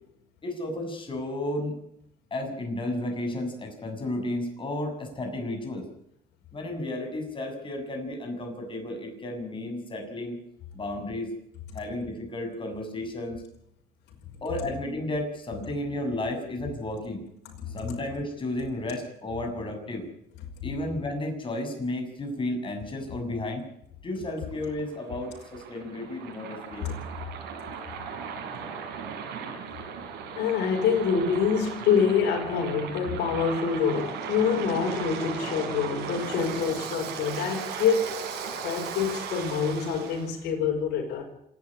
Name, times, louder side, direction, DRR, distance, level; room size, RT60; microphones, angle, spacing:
voice 1, 0.4-1.8 2.3-5.8 6.5-10.4 10.7-11.3 11.7-13.4 14.4-17.2 17.7-20.1 20.6-23.6 24.0-26.9, left 1 dB, 30° left, 3 dB, 7.1 m, -33 dB
Waves surf, 24.5-40.3, right 6 dB, 85° right, 5.7 m, -37 dB
voice 2, 30.4-38.2 38.6-41.2, left 6 dB, 80° left, 1 dB, 5.5 m, -26 dB
26.5 x 10.5 x 10.0 m, 0.75 s
cardioid pair, 110°, 17 cm